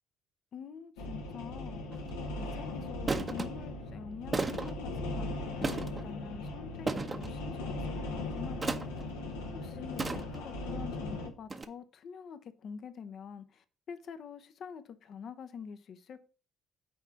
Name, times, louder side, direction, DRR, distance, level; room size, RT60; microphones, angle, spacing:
voice 1, 0.5-8.8 9.5-16.2, left 6 dB, 55° left, 0.8 m, -46 dB
sound 1, 1.0-11.3, left 2 dB, 75° left, 1.0 m, -38 dB
sound 2, 1.9-2.1 3.1-3.5 4.3-4.8 5.6-6.1 6.9-7.3 8.6-9.0 10.0-10.5 11.5-11.6, right 3 dB, 30° right, 0.8 m, -34 dB
6.4 x 4.5 x 5.8 m
hypercardioid pair, 50°, 0 cm